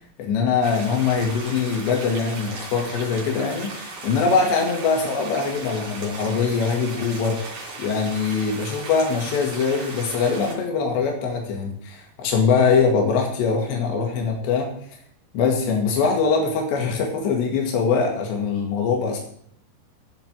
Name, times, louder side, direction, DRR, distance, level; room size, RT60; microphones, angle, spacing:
voice 1, 0.2-7.4 7.8-14.7 15.3-19.2, left 5 dB, 90° left, 1 dB, 4.3 m, -22 dB
sound 1, 0.6-10.5, right 3 dB, 45° right, 4.7 m, -37 dB
10.5 x 7.7 x 8.5 m, 0.65 s
omnidirectional pair, 4.9 m